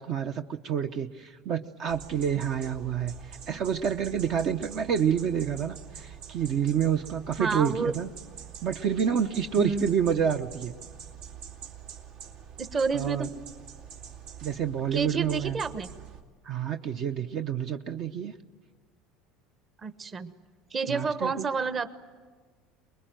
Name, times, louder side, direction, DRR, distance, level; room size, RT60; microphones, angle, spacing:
voice 1, 0.0-8.1 8.6-10.7 12.9-13.3 14.4-15.6 16.4-18.3 20.9-21.5, right 8 dB, 50° right, 7 dB, 0.9 m, -28 dB
sound 1, 1.9-16.2, right 8 dB, 75° right, 2.6 m, -45 dB
voice 2, 7.4-7.9 9.5-9.9 12.6-13.3 14.9-15.9 19.8-20.3 20.7-21.9, right 4 dB, 25° right, 12 dB, 1.1 m, -29 dB
25.0 x 21.5 x 9.1 m, 1.5 s
cardioid pair, 135°, 0 cm